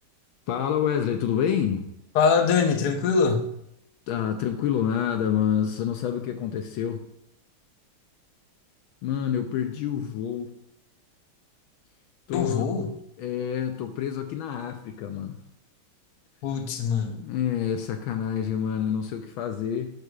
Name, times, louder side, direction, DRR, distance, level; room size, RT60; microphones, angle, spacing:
voice 1, 0.5-1.9 4.1-7.0 9.0-10.5 12.3-12.7 13.2-15.4 17.1-19.9, left 9 dB, 75° left, 5 dB, 1.4 m, -27 dB
voice 2, 2.1-3.5 12.3-12.9 16.4-17.2, left 5 dB, 60° left, 4 dB, 1.2 m, -23 dB
11.5 x 4.7 x 2.4 m, 0.77 s
omnidirectional pair, 2.3 m